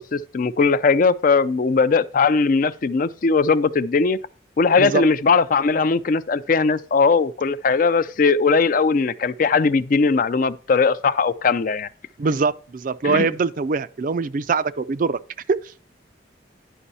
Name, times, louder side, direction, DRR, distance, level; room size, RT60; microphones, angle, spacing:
voice 1, 0.0-4.2 4.6-11.9 13.0-13.3, left 4 dB, 45° left, 0.4 m, -19 dB
voice 2, 12.2-15.2 15.5-15.6, right 4 dB, 45° right, 0.4 m, -22 dB
10.0 x 5.4 x 4.1 m
head